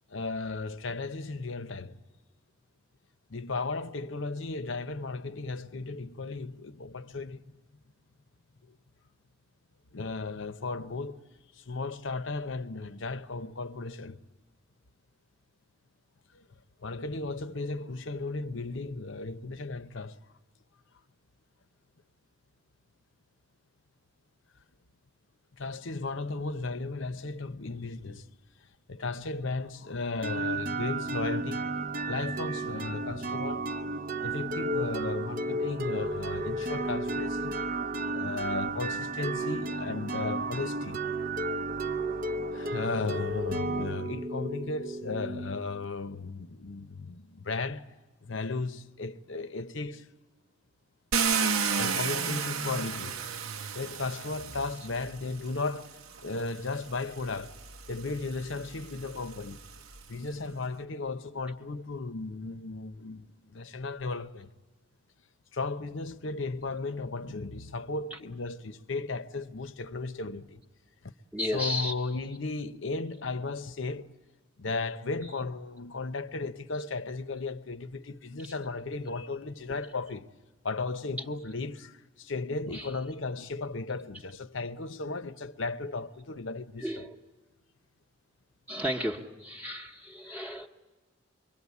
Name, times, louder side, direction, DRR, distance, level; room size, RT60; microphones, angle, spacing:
voice 1, 0.1-2.0 3.3-7.4 9.9-11.2 11.6-14.2 16.3-16.4 16.8-20.2 25.5-28.3 28.9-31.7 32.1-33.7 34.2-37.5 38.1-41.0 42.5-47.9 48.2-50.1 51.8-53.2 53.7-57.5 57.9-59.6 60.1-64.5 65.5-70.6 71.0-71.1 71.5-74.1 74.6-80.3 80.6-86.9 89.6-89.7 90.3-90.4, left 3 dB, 65° left, 0.8 m, -35 dB
sound 1, 30.2-45.8, right 2 dB, 40° right, 0.7 m, -33 dB
Car, 51.1-55.2 56.2-56.3 56.8-60.1, right 6 dB, 80° right, 1.0 m, -32 dB
voice 2, 71.3-71.9 78.4-78.5 81.2-81.3 82.7-82.9 86.8-87.2 88.7-90.7, left 1 dB, 5° right, 1.0 m, -34 dB
25.5 x 23.0 x 8.3 m
head